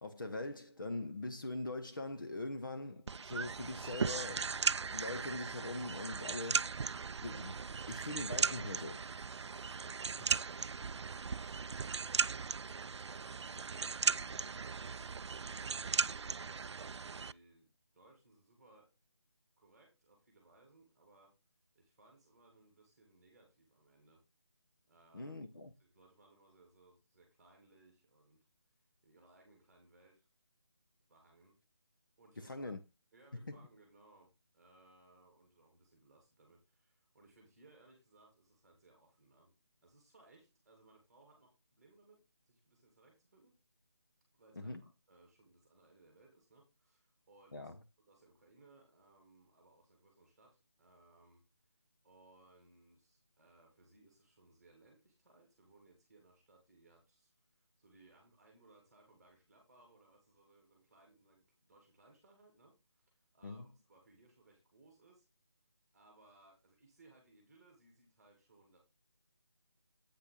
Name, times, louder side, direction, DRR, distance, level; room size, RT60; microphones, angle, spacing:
voice 1, 0.0-4.5 4.9-6.8 7.2-9.0 25.1-25.7 32.4-32.8 44.6-44.8 47.5-47.8 63.4-63.7, left 2 dB, 45° left, 1.0 m, -42 dB
sound 1, 3.1-17.3, right 5 dB, 80° right, 0.4 m, -37 dB
voice 2, 9.5-15.1 15.9-18.9 19.6-21.3 21.7-24.2 24.9-25.4 25.8-28.4 29.0-30.3 31.1-31.6 32.2-32.7 33.1-39.5 39.8-43.5 44.3-47.7 48.1-51.4 52.0-63.0 63.3-65.2 65.9-68.8, right 2 dB, ahead, 2.0 m, -65 dB
8.5 x 5.6 x 3.8 m
figure-of-eight pair, 175°, 14 cm